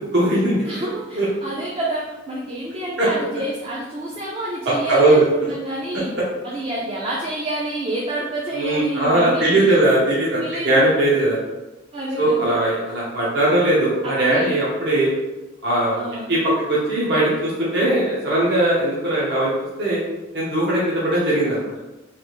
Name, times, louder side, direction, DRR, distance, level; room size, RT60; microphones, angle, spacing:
voice 1, 0.0-0.6 1.2-1.3 3.0-3.1 4.6-5.2 5.9-6.2 8.5-11.4 12.2-15.1 15.6-16.0 16.3-16.4 16.7-19.5 19.8-20.0 20.3-21.6, right 1 dB, 55° right, -7 dB, 0.8 m, -19 dB
voice 2, 0.6-6.1 6.4-9.8 10.4-10.9 11.9-12.6 14.0-14.5 15.9-16.3, right 1 dB, 30° right, -4 dB, 0.4 m, -28 dB
3.3 x 2.4 x 3.0 m, 1.1 s
head